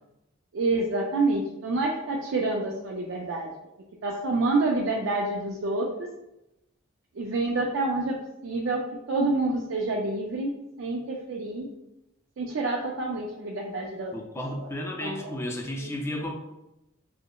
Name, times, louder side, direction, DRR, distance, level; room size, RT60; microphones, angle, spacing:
voice 1, 0.5-3.5 4.0-6.1 7.2-8.1 8.4-8.8 9.1-10.5 10.8-11.7 12.4-14.1 15.0-15.3 15.8-15.9, right 2 dB, 65° right, -1 dB, 0.4 m, -27 dB
voice 2, 14.1-16.3, left 1 dB, 15° left, 1 dB, 0.4 m, -33 dB
4.8 x 2.0 x 2.2 m, 0.90 s
head